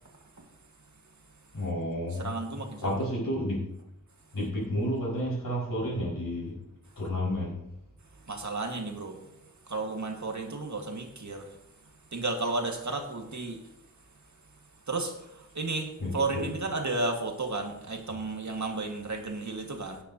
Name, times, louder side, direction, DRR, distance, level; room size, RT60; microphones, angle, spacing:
voice 1, 1.5-2.3 2.8-3.6 4.3-6.5 7.0-7.5 16.0-16.4, equal, 70° left, -6 dB, 4.9 m, -31 dB
voice 2, 2.1-2.9 8.3-9.2 9.7-11.5 12.1-13.6 14.9-20.0, right 3 dB, 55° right, 3 dB, 1.7 m, -33 dB
17.5 x 9.9 x 2.8 m, 0.83 s
wide cardioid pair, 75°, 35 cm